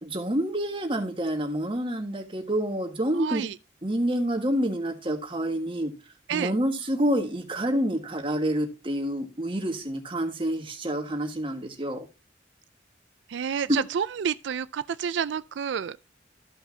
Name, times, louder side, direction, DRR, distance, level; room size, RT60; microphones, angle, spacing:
voice 1, 0.0-3.4 3.8-5.9 6.3-12.1, right 1 dB, 30° right, 1.5 m, -28 dB
voice 2, 3.1-3.6 6.3-6.5 13.3-16.0, right 7 dB, 80° right, 0.4 m, -29 dB
13.5 x 5.7 x 2.7 m
head